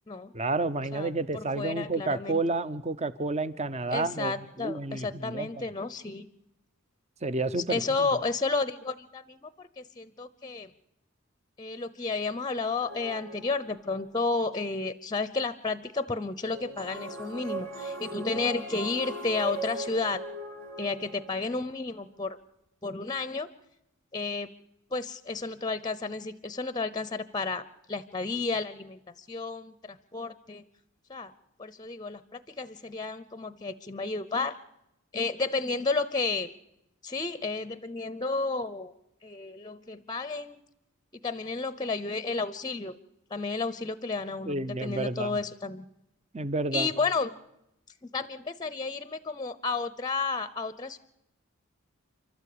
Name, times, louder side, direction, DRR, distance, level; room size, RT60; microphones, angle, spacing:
voice 1, 0.3-5.7 7.2-8.1 44.5-45.4 46.3-46.9, right 3 dB, 30° right, 14 dB, 0.9 m, -30 dB
voice 2, 0.9-2.4 3.9-6.3 7.6-10.7 11.6-20.2 20.8-22.4 22.8-23.5 24.1-24.5 24.9-30.6 31.1-31.3 31.6-34.6 35.1-36.5 37.0-38.9 39.2-40.6 41.2-43.0 43.3-45.9 46.7-47.3 48.0-51.0, left 3 dB, 20° left, 15 dB, 0.7 m, -32 dB
sound 1, 12.8-14.1 16.4-21.7, right 2 dB, 65° right, 3.8 m, -39 dB
29.5 x 12.5 x 8.6 m, 0.85 s
head